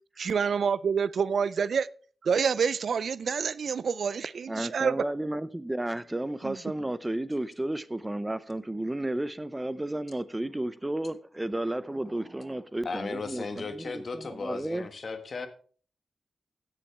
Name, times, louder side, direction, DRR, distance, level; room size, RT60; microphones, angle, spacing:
voice 1, 0.2-1.9 2.2-4.9 6.4-6.6, right 6 dB, 75° right, 0.4 m, -27 dB
voice 2, 4.5-14.9, right 1 dB, 15° right, 0.6 m, -33 dB
voice 3, 12.8-15.5, left 4 dB, 55° left, 1.5 m, -36 dB
16.5 x 7.2 x 3.3 m
cardioid pair, 80°, 0 cm